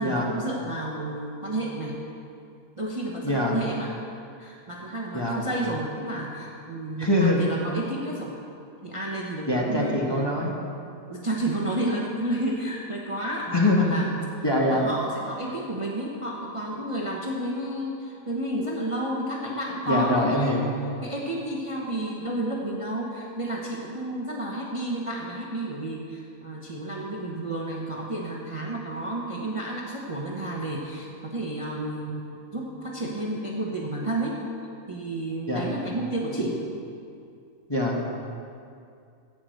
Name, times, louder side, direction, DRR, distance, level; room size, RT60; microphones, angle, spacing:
voice 1, 0.0-2.0 2.8-3.9 4.4-8.4 8.8-10.2 11.1-14.1 14.6-34.4 34.9-36.6, right 1 dB, 25° right, -2 dB, 1.0 m, -31 dB
voice 2, 3.2-3.6 5.1-5.4 7.0-7.5 9.5-10.5 13.5-13.9 14.4-14.9 19.9-20.6 35.5-35.7 37.7-38.1, left 1 dB, 20° left, -3 dB, 1.4 m, -23 dB
14.5 x 5.1 x 7.7 m, 2.4 s
omnidirectional pair, 1.5 m